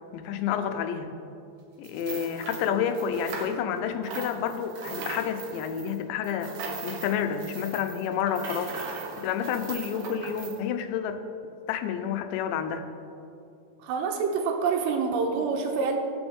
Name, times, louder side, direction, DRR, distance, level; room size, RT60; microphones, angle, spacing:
voice 1, 0.1-1.1 1.8-6.5 6.8-8.7 9.2-11.2 11.7-12.9, left 8 dB, 90° left, 8 dB, 3.0 m, -29 dB
sound 1, 1.8-3.8 4.0-10.6, right 4 dB, 65° right, 2.4 m, -39 dB
voice 2, 13.8-16.0, right 5 dB, 80° right, 3 dB, 3.2 m, -27 dB
20.0 x 6.9 x 3.6 m, 2.5 s
omnidirectional pair, 5.0 m